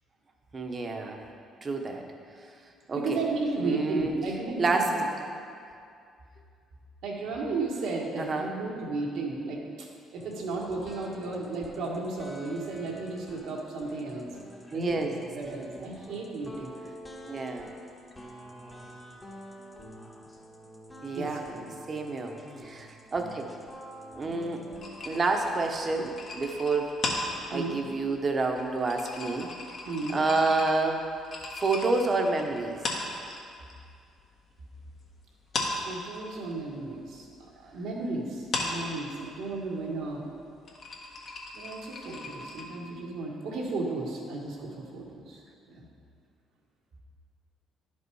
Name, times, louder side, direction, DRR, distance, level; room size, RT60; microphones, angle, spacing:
voice 1, 0.5-1.2 1.6-2.0 2.9-3.2 3.6-4.1 4.6-4.9 8.3-8.5 14.7-15.1 17.3-17.7 21.0-21.4 21.9-22.3 22.6-23.5 24.1-24.6 25.1-27.0 27.5-29.5 30.1-31.0 31.5-32.8, right 3 dB, 35° right, 3 dB, 1.1 m, -28 dB
voice 2, 2.9-5.1 7.0-9.9 10.1-14.3 14.7-15.1 15.3-16.7 21.1-21.7 27.5-27.8 29.9-30.2 35.8-37.3 37.6-40.3 41.5-45.4 45.7-45.9, right 3 dB, 80° right, -2 dB, 1.6 m, -34 dB
sound 1, 10.2-26.3, equal, 20° left, 1.3 m, -47 dB
sound 2, 24.8-33.8 34.0-35.1 35.4-42.6, left 2 dB, 55° left, 1.6 m, -37 dB
11.0 x 5.3 x 4.8 m, 2.3 s
cardioid pair, 85°, 0 cm